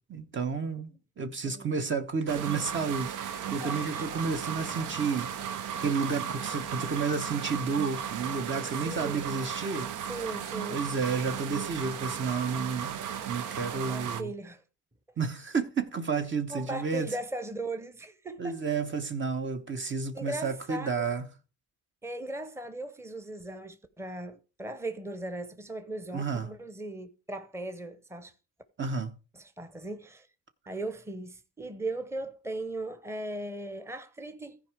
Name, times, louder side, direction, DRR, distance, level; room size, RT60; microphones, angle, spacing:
voice 1, 0.1-0.9 1.2-5.3 5.8-9.9 10.7-13.0 13.3-14.3 15.2-17.1 18.4-21.3 26.1-26.5 28.8-29.1, right 5 dB, 40° right, 1.1 m, -31 dB
voice 2, 1.4-1.8 2.3-2.5 3.6-4.1 8.8-9.3 10.0-10.9 13.5-14.6 16.5-18.6 20.1-21.0 22.0-28.3 29.3-30.3 30.7-34.6, right 2 dB, 10° right, 1.0 m, -38 dB
sound 1, 2.3-14.2, right 8 dB, 80° right, 0.8 m, -35 dB
14.5 x 4.9 x 4.8 m
cardioid pair, 90°, 30 cm